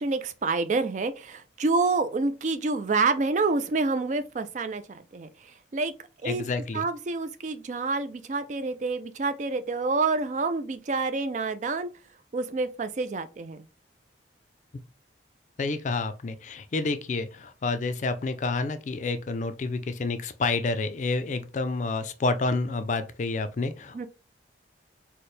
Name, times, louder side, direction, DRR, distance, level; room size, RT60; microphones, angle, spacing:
voice 1, 0.0-5.3 5.7-5.9 6.2-6.4 6.7-11.9 12.3-13.6 23.9-24.1, right 3 dB, 40° right, 0.3 m, -28 dB
voice 2, 6.2-6.9 15.6-24.1, left 3 dB, 40° left, 0.4 m, -29 dB
4.2 x 2.1 x 3.2 m
head